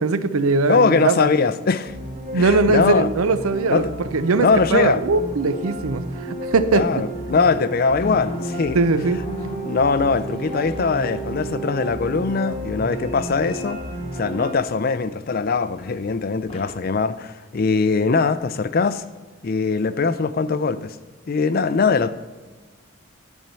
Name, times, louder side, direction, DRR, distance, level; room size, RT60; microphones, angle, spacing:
voice 1, 0.0-1.3 2.3-3.8 4.1-7.0 8.7-9.2, right 3 dB, 85° right, 0.6 m, -20 dB
voice 2, 0.7-1.9 2.3-3.1 3.7-3.9 4.4-5.0 6.7-8.8 9.6-13.8 14.2-19.0 19.4-21.0 21.3-22.1, left 4 dB, 45° left, 0.4 m, -21 dB
sound 1, 1.9-14.5, right 1 dB, 35° right, 1.2 m, -32 dB
sound 2, 8.0-11.5 12.9-15.2 15.7-15.9 16.5-16.7, left 1 dB, 25° left, 0.9 m, -38 dB
10.5 x 4.4 x 6.8 m
head